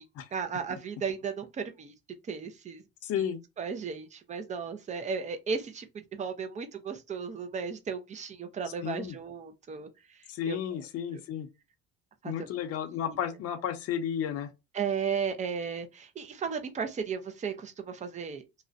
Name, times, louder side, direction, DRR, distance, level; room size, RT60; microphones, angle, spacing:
voice 1, 0.3-1.9 2.3-2.8 3.6-10.6 11.1-11.2 12.2-12.5 13.1-13.2 14.7-18.4, right 6 dB, 25° right, 0.4 m, -35 dB
voice 2, 3.0-3.4 8.8-9.1 10.3-11.5 12.2-14.5, left 9 dB, 50° left, 0.6 m, -33 dB
2.4 x 2.1 x 2.5 m
cardioid pair, 115°, 30 cm